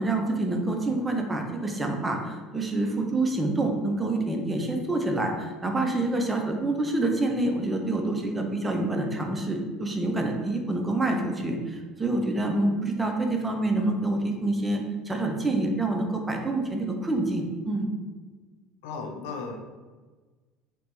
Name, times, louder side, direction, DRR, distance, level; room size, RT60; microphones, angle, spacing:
voice 1, 0.0-17.9, right 2 dB, 15° right, 3 dB, 0.5 m, -27 dB
voice 2, 18.8-19.6, left 4 dB, 85° left, 5 dB, 0.5 m, -35 dB
3.3 x 2.9 x 3.0 m, 1.3 s
supercardioid pair, 120°, 0 cm